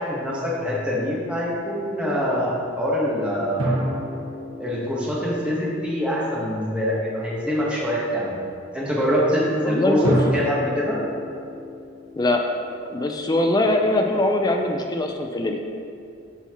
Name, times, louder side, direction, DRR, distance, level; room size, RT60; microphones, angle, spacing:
voice 1, 0.0-3.7 4.6-8.4 8.7-10.0 10.3-11.0, equal, 5° right, -6 dB, 1.2 m, -24 dB
sound 1, 3.6-6.4 10.0-13.4, equal, 75° right, 1.5 m, -30 dB
voice 2, 9.6-10.2 12.2-12.4 12.9-15.6, left 2 dB, 20° left, 3 dB, 0.4 m, -22 dB
11.5 x 4.3 x 3.0 m, 2.5 s
head